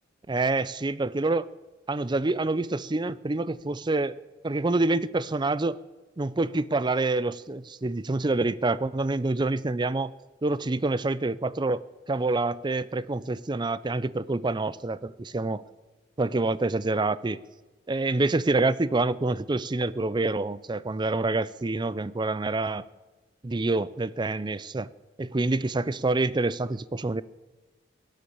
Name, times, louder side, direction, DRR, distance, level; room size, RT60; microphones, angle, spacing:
voice 1, 0.3-1.5 1.9-4.2 4.4-5.8 6.2-10.1 10.4-15.6 16.2-17.4 17.9-22.9 23.4-24.9 25.2-27.2, right 2 dB, 25° right, 18 dB, 0.5 m, -27 dB
17.5 x 10.0 x 8.0 m, 1.2 s
head